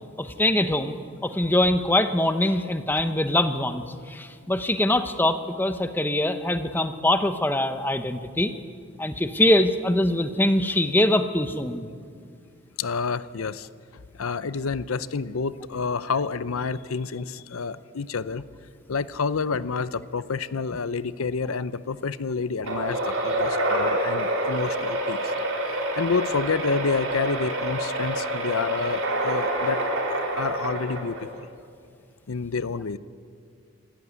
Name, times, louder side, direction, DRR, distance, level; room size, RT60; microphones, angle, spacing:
voice 1, 0.2-1.0 1.2-8.5 9.0-11.9, left 1 dB, 10° left, 9 dB, 0.8 m, -23 dB
voice 2, 12.8-13.7 14.2-18.4 18.9-25.3 25.9-29.8 30.1-31.5 32.3-33.0, left 5 dB, 85° left, 16 dB, 0.6 m, -29 dB
sound 1, 22.6-31.4, right 1 dB, 85° right, 4.5 m, -27 dB
26.0 x 13.5 x 9.6 m, 2.2 s
head